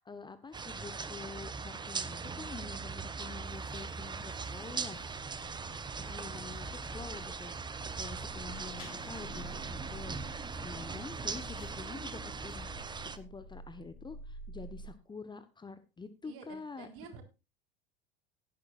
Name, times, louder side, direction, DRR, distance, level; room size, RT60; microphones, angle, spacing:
voice 1, 0.0-5.0 6.0-10.2 10.6-16.9, left 4 dB, 15° left, 1.2 m, -47 dB
sound 1, 0.5-13.2, right 4 dB, 15° right, 1.1 m, -40 dB
voice 2, 2.1-2.8 5.5-5.9 16.2-17.2, right 6 dB, 50° right, 4.0 m, -52 dB
sound 2, 3.4-13.2, left 5 dB, 60° left, 5.2 m, -61 dB
sound 3, 11.1-14.9, right 2 dB, 30° left, 6.4 m, -51 dB
17.0 x 10.5 x 2.5 m
figure-of-eight pair, 75°, 29 cm